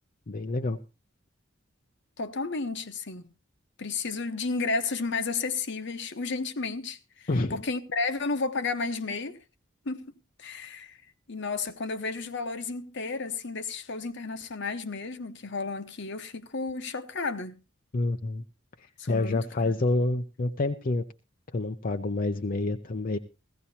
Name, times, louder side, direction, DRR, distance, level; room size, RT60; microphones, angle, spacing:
voice 1, 0.3-0.8 7.3-7.6 17.9-18.4 18.8-21.0 21.5-23.2, left 2 dB, 45° left, 0.6 m, -28 dB
voice 2, 2.2-3.3 3.8-9.4 9.8-10.1 10.4-11.0 11.3-17.6 19.0-19.8, left 4 dB, 60° left, 1.1 m, -32 dB
17.0 x 15.5 x 2.8 m
head